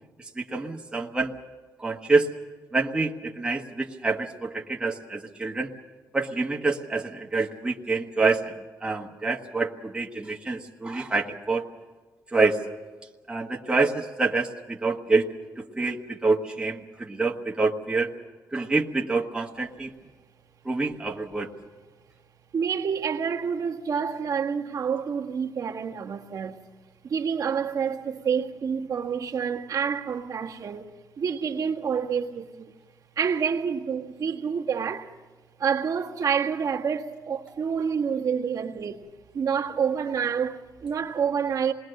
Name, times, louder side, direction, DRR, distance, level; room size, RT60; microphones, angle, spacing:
voice 1, 0.3-1.3 1.8-2.3 2.7-5.7 6.1-11.6 12.3-12.6 13.3-15.3 15.6-18.1 18.5-19.9 20.6-21.5, right 3 dB, 15° right, 1.6 m, -26 dB
voice 2, 22.5-26.6 27.0-32.7 33.1-35.1 35.6-39.1 39.3-41.7, right 6 dB, 55° right, 1.7 m, -28 dB
27.5 x 20.5 x 6.6 m
cardioid pair, 125°, 7 cm